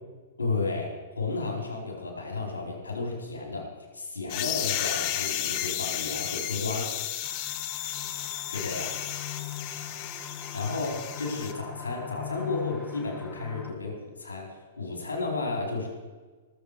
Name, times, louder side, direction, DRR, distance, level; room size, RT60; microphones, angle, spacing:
voice 1, 0.4-3.6 3.9-6.9 8.5-8.9 10.5-14.5 14.8-15.9, left 3 dB, 80° left, 0 dB, 4.4 m, -32 dB
sound 1, 4.3-11.5, left 12 dB, 45° left, 0.9 m, -33 dB
sound 2, 7.2-13.7, left 8 dB, 20° left, 1.7 m, -41 dB
20.5 x 7.8 x 5.0 m, 1.4 s
hypercardioid pair, 110°, 0 cm